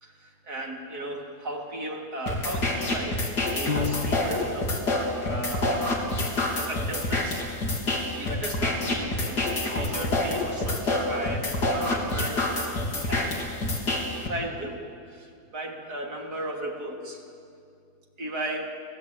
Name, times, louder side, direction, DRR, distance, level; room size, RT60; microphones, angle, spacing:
voice 1, 0.0-4.7 5.3-5.7 6.6-7.5 7.9-12.5 13.1-13.4 14.2-14.8 15.1-17.3 18.2-18.6, right 1 dB, 75° right, 0 dB, 3.8 m, -35 dB
sound 1, 2.3-14.3, left 2 dB, 90° left, 3.9 m, -27 dB
Piano, 3.7-4.7, left 6 dB, 40° left, 1.1 m, -31 dB
30.0 x 17.0 x 9.2 m, 2.4 s
omnidirectional pair, 1.7 m